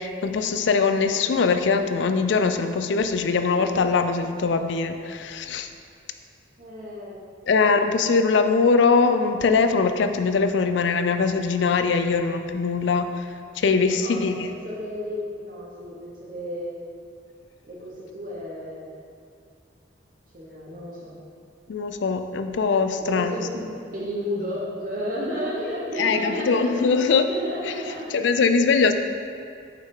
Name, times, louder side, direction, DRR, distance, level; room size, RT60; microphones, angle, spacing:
voice 1, 0.0-5.7 7.5-13.3 13.5-14.6 21.7-23.4 26.0-27.3 27.7-27.8 28.1-28.9, left 4 dB, 70° left, 8 dB, 0.4 m, -22 dB
voice 2, 6.6-7.2 13.9-14.3 14.6-16.8 17.6-18.9 20.3-21.2 23.0-23.5 23.9-26.7 27.3-28.0, equal, 45° right, -5 dB, 1.0 m, -32 dB
6.4 x 5.7 x 3.7 m, 2.3 s
head